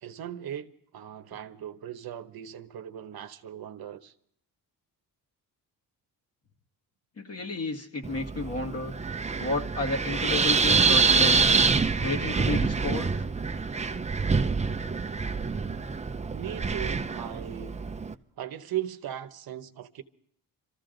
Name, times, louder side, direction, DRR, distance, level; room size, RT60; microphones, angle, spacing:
voice 1, 0.0-4.1 16.3-17.8 18.4-20.0, right 11 dB, 65° right, 1.0 m, -38 dB
voice 2, 7.2-8.9 9.4-11.6 12.0-13.3, left 2 dB, 35° left, 1.9 m, -32 dB
Wind, 8.0-18.1, right 4 dB, 15° right, 0.6 m, -26 dB
25.5 x 14.5 x 3.9 m
cardioid pair, 105°, 40 cm